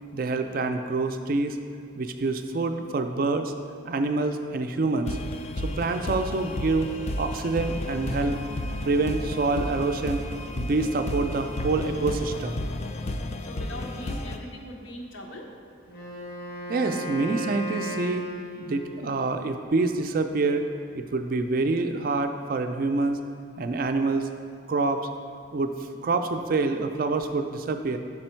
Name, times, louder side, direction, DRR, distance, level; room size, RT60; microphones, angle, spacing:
voice 1, 0.1-1.6 2.0-3.5 3.8-5.2 5.6-8.4 8.8-10.2 10.5-12.6 16.7-18.2 18.6-20.7 20.9-23.2 23.6-24.3 24.7-25.0 25.5-25.7 26.0-28.0, right 3 dB, 45° right, 7 dB, 0.3 m, -26 dB
sound 1, 5.1-14.4, left 1 dB, 30° left, 0.3 m, -32 dB
voice 2, 13.4-15.5, left 1 dB, 80° left, 1 dB, 0.9 m, -40 dB
Wind instrument woodwind instrument, 15.9-19.2, equal, 50° left, 0.8 m, -36 dB
6.2 x 5.1 x 4.4 m, 2.2 s
head